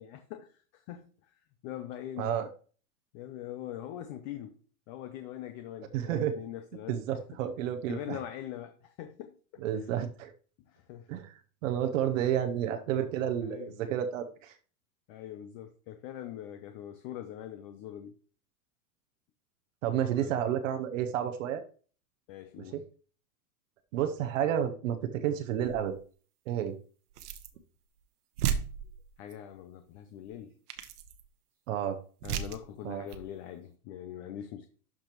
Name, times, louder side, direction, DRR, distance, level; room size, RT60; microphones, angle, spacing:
voice 1, 0.0-1.3 1.6-2.4 3.1-4.6 4.9-7.0 7.3-7.4 7.9-9.9 10.7-11.1 13.4-13.7 15.1-18.2 20.2-20.3 22.3-22.8 29.2-30.6 32.2-34.7, left 11 dB, 25° left, 0.4 m, -43 dB
voice 2, 2.2-2.5 5.9-6.3 6.9-8.2 9.6-10.3 11.1-11.3 11.6-14.6 19.8-21.6 22.7-22.8 23.9-26.0 26.5-26.8 31.7-32.0 32.8-33.0, right 10 dB, 60° right, 0.9 m, -30 dB
sound 1, 25.6-26.0 27.1-27.6 28.0-28.1 28.4-29.3 30.2-30.4 30.7-31.3 32.2-32.7 33.1-33.3, right 8 dB, 80° right, 1.2 m, -35 dB
12.0 x 5.0 x 3.0 m
supercardioid pair, 140°, 45 cm